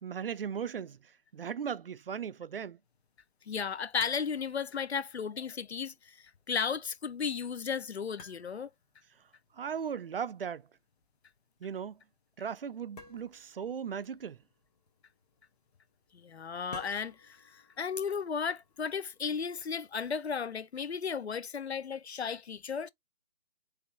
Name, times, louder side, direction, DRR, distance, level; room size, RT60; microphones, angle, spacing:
voice 1, 0.0-2.8 9.5-10.7 11.6-12.0 12.4-14.4, right 7 dB, 60° right, 0.6 m, -37 dB
sound 1, 2.8-20.0, left 4 dB, 40° left, 1.4 m, -57 dB
voice 2, 3.5-8.7 16.1-22.9, left 6 dB, 85° left, 0.7 m, -35 dB
3.6 x 3.3 x 4.4 m
figure-of-eight pair, 155°, 32 cm